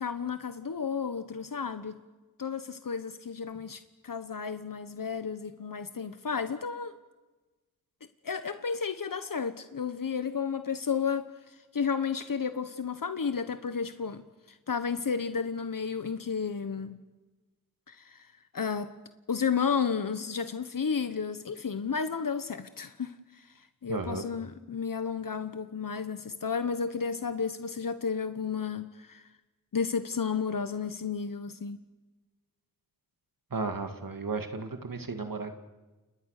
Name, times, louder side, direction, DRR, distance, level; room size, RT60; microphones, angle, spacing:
voice 1, 0.0-2.0 2.4-6.9 8.2-11.2 11.7-14.2 14.7-17.0 17.9-18.3 18.5-18.9 19.3-23.1 23.8-29.2 29.7-31.8, left 6 dB, 75° left, 10 dB, 1.2 m, -32 dB
voice 2, 23.9-24.3 33.5-35.6, right 4 dB, 80° right, 6 dB, 2.3 m, -34 dB
30.0 x 27.0 x 6.7 m, 1.2 s
wide cardioid pair, 55°, 34 cm